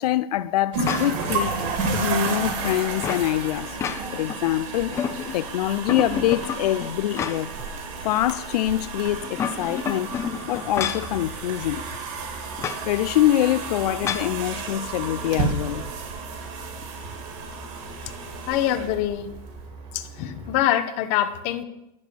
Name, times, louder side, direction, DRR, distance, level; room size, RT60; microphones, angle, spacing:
voice 1, 0.0-1.7 1.9-3.8 4.1-5.0 5.3-7.5 8.0-10.1 10.5-11.8 12.8-15.8, left 13 dB, 85° left, 0.4 m, -24 dB
sound 1, 0.7-19.6, right 4 dB, 50° right, 2.2 m, -32 dB
sound 2, 0.8-1.3 1.8-3.3 3.7-4.4 4.7-5.5 5.9-7.6 8.0-8.1 9.1-11.1 12.6-12.8 14.0-14.3, left 7 dB, 15° left, 0.4 m, -30 dB
sound 3, 10.7-20.6, right 2 dB, 30° right, 1.7 m, -43 dB
voice 2, 18.5-19.3 19.9-21.6, left 12 dB, 40° left, 0.8 m, -24 dB
10.5 x 6.1 x 6.8 m
supercardioid pair, 160°, 19 cm